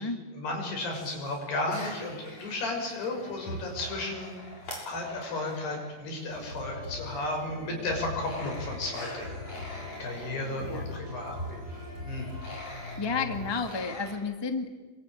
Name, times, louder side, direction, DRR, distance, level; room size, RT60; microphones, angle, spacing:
voice 1, 0.3-4.4 4.8-12.3, left 2 dB, 90° left, 2 dB, 8.1 m, -34 dB
sound 1, 0.8-6.8 7.1-14.1, equal, 40° left, 7.7 m, -44 dB
sound 2, 6.3-13.5, left 3 dB, 20° right, 8.6 m, -40 dB
voice 2, 13.0-14.8, left 4 dB, 25° left, 6 dB, 0.5 m, -32 dB
27.0 x 23.0 x 9.2 m, 1.3 s
omnidirectional pair, 4.5 m